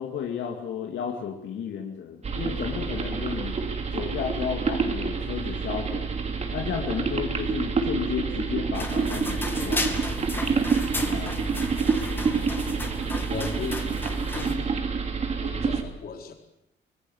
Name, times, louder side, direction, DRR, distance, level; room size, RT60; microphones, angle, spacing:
voice 1, 0.0-3.6 3.9-6.1 6.5-10.0 10.9-11.4, left 7 dB, 85° left, 2 dB, 2.7 m, -33 dB
sound 1, 2.2-15.8, right 5 dB, 35° right, 2.6 m, -28 dB
sound 2, 8.7-14.6, left 2 dB, 10° left, 2.5 m, -34 dB
voice 2, 12.3-12.8 13.3-13.9 14.3-14.7 15.4-16.3, left 5 dB, 55° left, 3 dB, 4.4 m, -36 dB
25.0 x 20.0 x 8.1 m, 0.79 s
cardioid pair, 155°, 19 cm